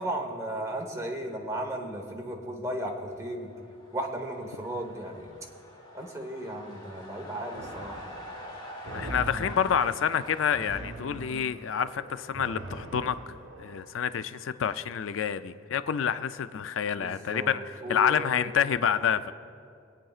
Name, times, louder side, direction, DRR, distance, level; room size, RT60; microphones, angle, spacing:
voice 1, 0.0-3.5 3.9-5.3 5.9-8.1 16.9-18.5, right 1 dB, 15° right, 1 dB, 1.1 m, -35 dB
sound 1, 3.1-10.8, equal, 25° left, 1.4 m, -46 dB
sound 2, 7.5-14.0, right 1 dB, 75° right, 1.0 m, -42 dB
voice 2, 8.9-13.2 13.6-19.3, left 8 dB, 85° left, 12 dB, 0.4 m, -28 dB
24.5 x 8.8 x 2.4 m, 2.4 s
head